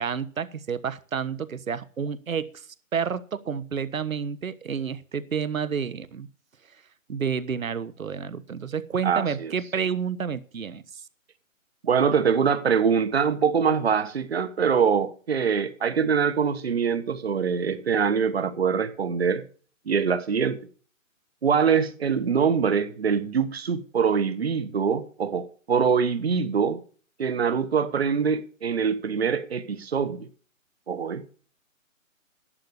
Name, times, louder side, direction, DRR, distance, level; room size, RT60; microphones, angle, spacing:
voice 1, 0.0-2.7 2.9-6.3 7.1-11.0, right 6 dB, 75° right, 1.4 m, -30 dB
voice 2, 9.0-9.5 11.8-19.4 19.9-20.6 21.4-26.8 27.2-30.3 30.9-31.2, right 6 dB, 50° right, 1.3 m, -24 dB
11.5 x 8.6 x 8.1 m
hypercardioid pair, 175°, 41 cm